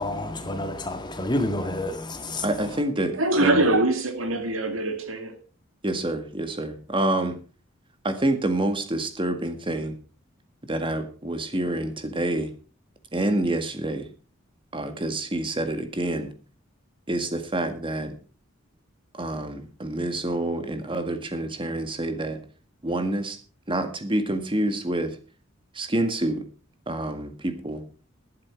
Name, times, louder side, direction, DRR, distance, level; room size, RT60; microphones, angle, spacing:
voice 1, 0.0-2.5, left 1 dB, 20° left, 1.9 m, -29 dB
voice 2, 2.4-3.7 5.8-7.4 8.0-10.0 10.7-12.5 13.1-14.1 14.7-16.3 17.1-18.2 19.1-22.4 22.8-23.4 23.7-25.2 25.7-26.4 26.9-27.9, right 1 dB, 25° right, 1.8 m, -27 dB
voice 3, 3.2-5.4, right 2 dB, 80° right, 2.4 m, -23 dB
11.5 x 11.5 x 4.8 m
head